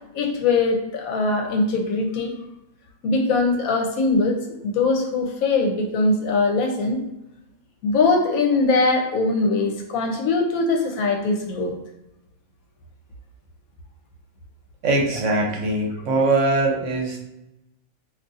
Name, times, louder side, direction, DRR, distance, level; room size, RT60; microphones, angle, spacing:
voice 1, 0.1-2.3 3.0-7.0 7.8-11.7, left 3 dB, 75° left, 2 dB, 1.1 m, -21 dB
voice 2, 14.8-17.2, right 2 dB, 65° right, 0 dB, 1.0 m, -21 dB
2.6 x 2.4 x 3.8 m, 0.91 s
omnidirectional pair, 1.5 m